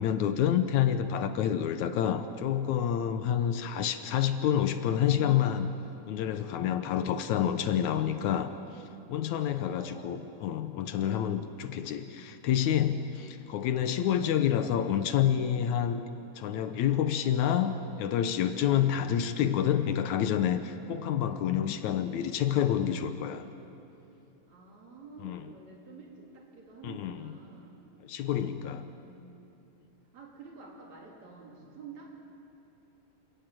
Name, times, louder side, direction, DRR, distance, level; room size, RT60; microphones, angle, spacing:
voice 1, 0.0-5.7 6.0-8.5 9.1-16.0 16.4-23.5 25.2-25.4 26.8-27.3 28.1-28.8, left 9 dB, 75° left, 10 dB, 2.0 m, -28 dB
voice 2, 9.7-10.1 14.2-14.5 24.5-27.8 28.5-29.6 30.1-32.1, right 4 dB, 60° right, -2 dB, 4.5 m, -50 dB
27.5 x 14.0 x 9.1 m, 2.8 s
omnidirectional pair, 3.6 m